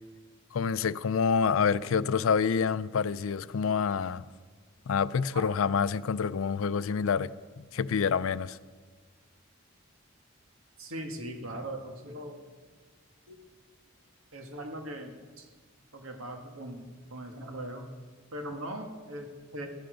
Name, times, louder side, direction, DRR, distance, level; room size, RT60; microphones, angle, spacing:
voice 1, 0.5-4.3 4.9-8.6, left 6 dB, 80° left, 0.4 m, -27 dB
voice 2, 10.8-12.4 13.3-13.4 14.3-15.5 15.9-17.9 18.3-19.7, right 1 dB, 85° right, 1.9 m, -40 dB
16.5 x 12.5 x 5.1 m
head